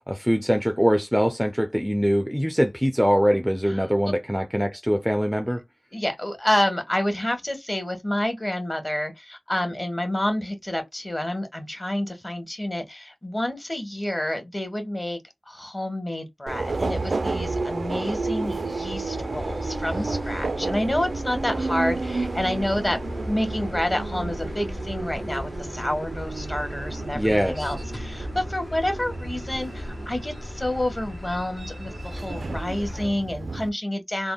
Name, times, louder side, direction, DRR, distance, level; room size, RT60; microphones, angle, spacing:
voice 1, 0.1-5.6 27.1-27.7, equal, 5° right, 0.4 m, -23 dB
voice 2, 3.7-4.1 5.9-15.2 15.5-34.3, left 1 dB, 30° left, 1.2 m, -29 dB
Subway metro underground, 16.5-33.7, right 3 dB, 75° right, 0.3 m, -32 dB
sound 1, 19.1-33.1, left 1 dB, 55° left, 0.7 m, -37 dB
3.4 x 2.0 x 2.2 m
cardioid pair, 40°, 0 cm